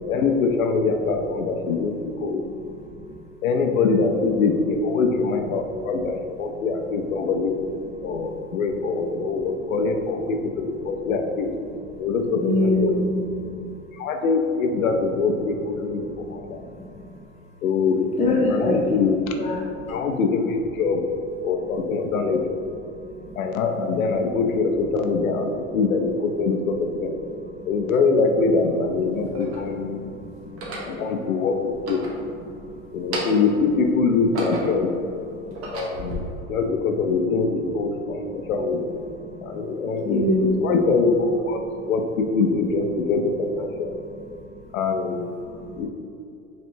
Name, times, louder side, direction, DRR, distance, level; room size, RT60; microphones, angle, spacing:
voice 1, 0.1-2.5 3.4-7.5 8.0-11.5 12.0-13.0 13.9-16.6 17.6-19.3 19.9-21.1 21.4-22.6 23.4-27.2 27.7-30.1 30.9-32.0 32.9-35.0 35.7-38.9 39.4-41.6 41.9-44.0 44.7-45.3 45.8-45.9, left 4 dB, 85° left, 4 dB, 0.6 m, -23 dB
voice 2, 12.4-13.3 13.6-13.7 16.2-17.1 18.2-18.8 19.4-19.9 23.2-23.3 27.5-27.6 29.9-30.8 32.5-32.8 35.3-35.6 36.4-36.5 39.2-39.7 40.1-40.5 41.7-41.9 45.4-45.7, left 1 dB, 20° left, -3 dB, 0.3 m, -26 dB
sound 1, 27.9-28.0 28.9-29.7 30.4-31.0 31.7-32.6 33.0-33.6 34.0-34.9 35.4-36.2, right 1 dB, 35° right, 0.9 m, -33 dB
4.4 x 3.2 x 2.7 m, 2.5 s
hypercardioid pair, 110°, 41 cm